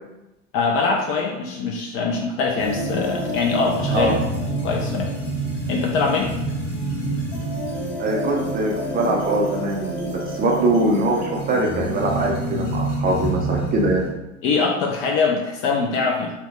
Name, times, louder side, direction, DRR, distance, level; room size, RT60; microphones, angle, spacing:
voice 1, 0.5-4.2 4.6-5.2 5.7-6.3 14.4-16.3, left 4 dB, 35° left, 1 dB, 0.4 m, -23 dB
sound 1, 2.6-14.1, right 1 dB, 75° left, 1.3 m, -27 dB
voice 2, 8.0-14.0, right 2 dB, 25° right, -1 dB, 0.5 m, -22 dB
2.7 x 2.0 x 3.0 m, 0.96 s
hypercardioid pair, 85°, 38 cm